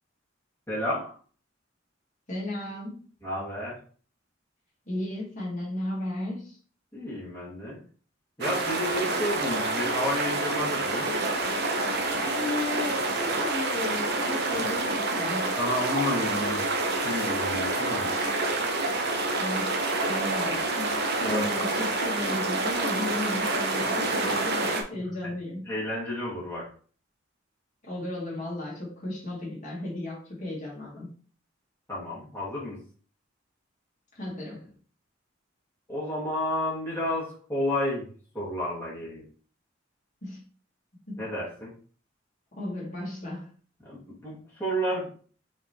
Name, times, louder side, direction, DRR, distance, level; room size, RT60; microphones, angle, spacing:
voice 1, 0.7-1.1 3.2-3.7 6.9-7.8 8.4-11.2 14.5-14.6 15.6-16.6 17.0-18.1 21.2-21.5 25.7-26.7 31.9-32.8 35.9-38.1 38.3-39.2 41.2-41.7 43.8-45.2, left 1 dB, 15° left, -8 dB, 1.8 m, -31 dB
voice 2, 2.3-3.0 4.9-6.6 12.1-15.6 19.4-25.7 27.8-31.1 34.1-34.7 40.2-40.4 41.1-41.3 42.6-43.5, left 1 dB, 40° left, -5 dB, 2.2 m, -35 dB
sound 1, 8.4-24.8, right 2 dB, 60° right, 0.8 m, -28 dB
5.7 x 3.3 x 2.8 m, 0.42 s
head